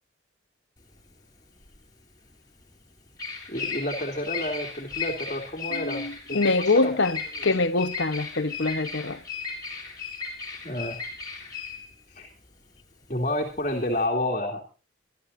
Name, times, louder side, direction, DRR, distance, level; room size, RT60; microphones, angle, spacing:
Bird vocalization bird call bird song, 0.8-14.1, left 5 dB, 20° left, 4.6 m, -36 dB
voice 1, 3.5-6.0 6.3-6.9 10.6-11.0 12.1-12.3 13.1-14.6, left 1 dB, 40° left, 3.0 m, -30 dB
voice 2, 5.7-9.2, left 3 dB, 70° left, 1.1 m, -25 dB
26.0 x 12.0 x 2.7 m
head